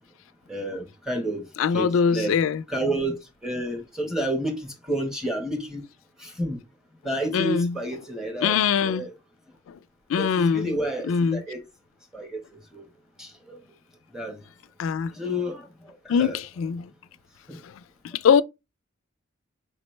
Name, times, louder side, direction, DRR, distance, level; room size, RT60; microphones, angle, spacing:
voice 1, 0.5-1.5 1.7-2.4 2.7-5.8 6.2-6.6 7.0-8.6 8.8-9.1 10.2-11.6 12.1-12.4 12.7-12.9 13.2-13.6 14.1-14.4 15.1-16.4 17.5-17.6, right 1 dB, 5° right, 1.1 m, -30 dB
voice 2, 1.6-2.6 7.3-7.7 8.4-9.1 10.1-10.7 11.1-11.4 14.8-15.1 16.1-16.9 18.2-18.4, left 6 dB, 90° left, 0.3 m, -22 dB
4.8 x 3.1 x 3.1 m
head